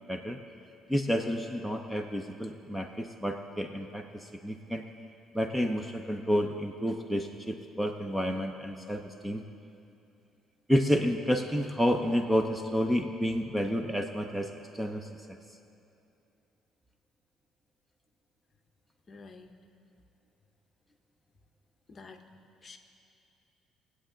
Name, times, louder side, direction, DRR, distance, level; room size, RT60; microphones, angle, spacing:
voice 1, 0.1-0.4 0.9-4.8 5.3-9.4 10.7-15.4, equal, 5° right, 4 dB, 0.5 m, -30 dB
voice 2, 19.1-19.5 21.9-22.2 22.6-22.8, left 4 dB, 30° left, 5 dB, 0.8 m, -49 dB
21.0 x 8.1 x 3.8 m, 2.7 s
cardioid pair, 145°, 0 cm